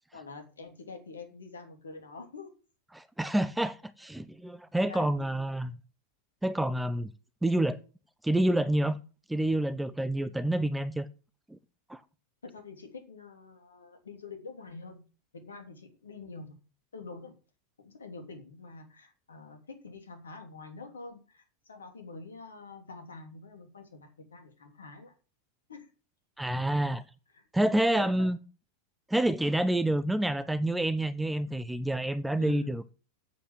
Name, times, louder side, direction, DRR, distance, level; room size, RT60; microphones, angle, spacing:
voice 1, 0.1-2.5 4.9-5.2 12.4-15.0 15.3-16.6 16.9-17.4 17.8-25.1 25.7-25.9 26.7-26.9 27.3-27.4 27.7-28.3 32.4-32.8, left 4 dB, 70° left, 3.0 m, -46 dB
voice 2, 2.9-5.7 6.4-7.1 7.4-7.8 8.2-9.0 9.3-11.1 11.5-11.6 11.9-12.0 26.4-27.0 27.5-28.4 29.1-32.9, right 1 dB, 5° right, 0.7 m, -28 dB
8.3 x 8.3 x 7.8 m
figure-of-eight pair, 90°, 0 cm